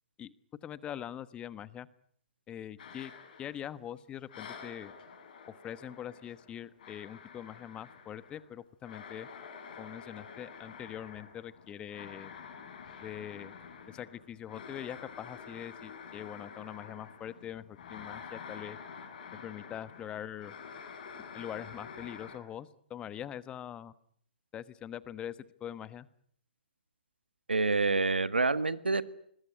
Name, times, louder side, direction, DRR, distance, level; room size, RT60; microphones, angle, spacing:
voice 1, 0.6-1.9 2.5-3.1 3.4-4.9 5.6-9.3 9.8-12.3 13.0-13.5 13.9-18.8 19.4-20.5 21.3-23.9 24.5-26.1, left 10 dB, 20° left, 17 dB, 1.1 m, -43 dB
sound 1, 2.8-4.0 4.3-22.4, left 6 dB, 50° left, 7.0 m, -48 dB
voice 2, 27.5-29.0, right 3 dB, 85° right, 14 dB, 1.6 m, -27 dB
25.5 x 21.0 x 9.4 m, 0.67 s
figure-of-eight pair, 125°, 6 cm